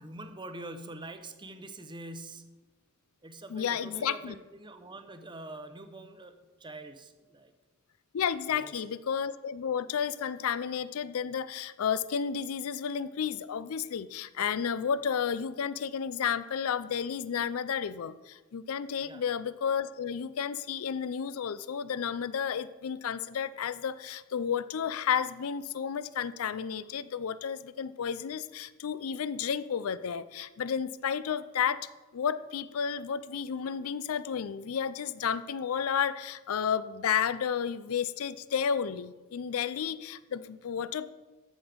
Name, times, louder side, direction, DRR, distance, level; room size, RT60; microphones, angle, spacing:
voice 1, 0.0-2.6 3.2-7.5 8.5-8.8 19.0-19.2, right 2 dB, 20° right, 8 dB, 0.8 m, -45 dB
voice 2, 3.5-4.3 8.1-31.9 32.1-41.1, left 7 dB, 75° left, 15 dB, 0.4 m, -32 dB
13.5 x 6.2 x 5.1 m, 1.2 s
head